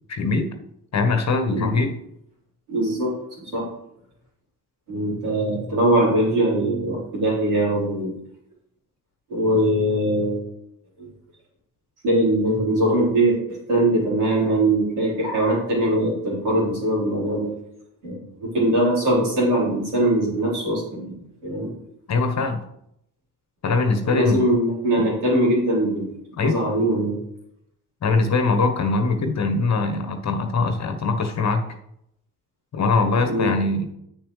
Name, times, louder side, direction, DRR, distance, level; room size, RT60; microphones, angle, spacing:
voice 1, 0.1-0.5 0.9-1.9 22.1-22.6 23.6-24.4 25.0-25.1 26.4-26.6 28.0-31.6 32.7-33.9, left 3 dB, 35° left, 6 dB, 1.3 m, -22 dB
voice 2, 2.7-3.7 4.9-8.1 9.3-10.5 11.0-11.1 12.0-17.5 18.0-21.1 21.4-21.7 24.1-26.1 26.4-27.2 33.3-33.5, right 1 dB, 75° right, -6 dB, 4.1 m, -21 dB
10.5 x 8.0 x 3.3 m, 0.77 s
figure-of-eight pair, 45°, 46 cm